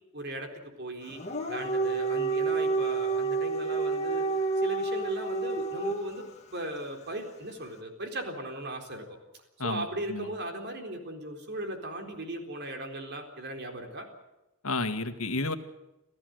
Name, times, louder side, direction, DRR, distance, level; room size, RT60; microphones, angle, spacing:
voice 1, 0.1-1.2 1.5-4.3 4.6-9.2 9.6-14.1, right 1 dB, 50° right, 4 dB, 4.1 m, -37 dB
Dog, 1.1-6.3, right 3 dB, 30° left, 2.5 m, -29 dB
voice 2, 9.6-10.3 14.6-15.5, left 2 dB, 80° left, 9 dB, 1.8 m, -31 dB
27.5 x 15.0 x 7.9 m, 0.95 s
head